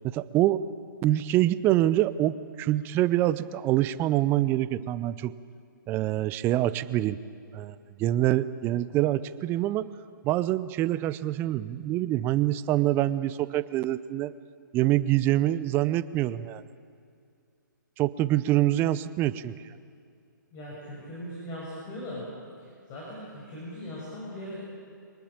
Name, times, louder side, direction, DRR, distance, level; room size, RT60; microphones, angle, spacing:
voice 1, 0.0-0.6 1.0-5.4 5.9-7.2 7.5-9.9 10.2-14.3 14.7-16.6 18.0-19.5, right 14 dB, 20° right, 16 dB, 0.6 m, -25 dB
voice 2, 20.5-22.3 22.6-24.7, left 1 dB, 25° left, -5 dB, 6.6 m, -39 dB
25.0 x 19.5 x 8.9 m, 2.4 s
figure-of-eight pair, 135°, 11 cm